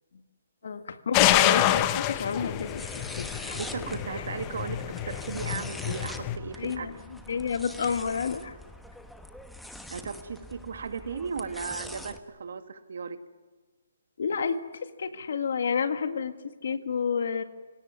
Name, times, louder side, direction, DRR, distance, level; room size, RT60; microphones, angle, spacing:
voice 1, 0.6-2.8 3.2-3.6 4.2-4.3 6.6-8.6 14.2-16.3 16.6-17.4, left 6 dB, 65° left, 9 dB, 1.8 m, -30 dB
sound 1, 1.1-6.4, left 13 dB, 25° left, 0.9 m, -27 dB
sound 2, 2.4-12.2, left 1 dB, ahead, 1.1 m, -43 dB
voice 2, 3.5-6.9 9.9-13.2, right 5 dB, 70° right, 9 dB, 2.0 m, -36 dB
27.0 x 17.5 x 9.6 m, 1.3 s
hypercardioid pair, 160°, 0 cm